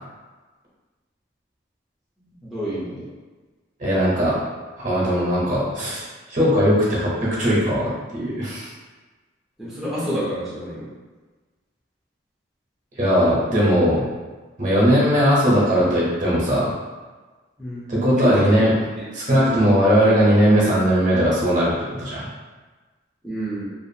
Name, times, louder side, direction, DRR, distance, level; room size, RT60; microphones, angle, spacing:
voice 1, 2.2-3.1 9.6-10.9 17.6-17.9 18.2-18.3 19.0-19.7 23.2-23.6, right 1 dB, ahead, -11 dB, 0.5 m, -30 dB
voice 2, 3.8-4.4 4.8-8.7 13.0-14.0 14.6-16.7 17.9-18.7 19.1-22.2, equal, 40° right, -6 dB, 0.8 m, -19 dB
2.5 x 2.4 x 2.7 m, 1.3 s
head